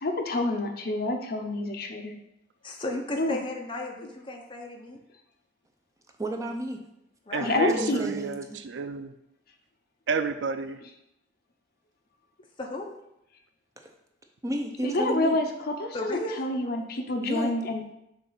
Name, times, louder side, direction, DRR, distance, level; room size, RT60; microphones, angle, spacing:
voice 1, 0.0-2.1 3.2-3.4 7.4-8.0 14.8-17.9, left 2 dB, 55° left, 4 dB, 0.7 m, -28 dB
voice 2, 2.6-5.0 7.3-7.5 12.6-12.9 15.9-16.4, left 1 dB, 25° left, 1 dB, 0.8 m, -34 dB
voice 3, 6.2-6.8 7.4-8.6 13.8-13.9 14.4-15.4 17.2-17.5, right 1 dB, 15° right, 3 dB, 0.6 m, -32 dB
voice 4, 7.3-9.1 10.1-10.8, right 5 dB, 75° right, 10 dB, 0.4 m, -31 dB
6.8 x 2.6 x 5.7 m, 0.84 s
head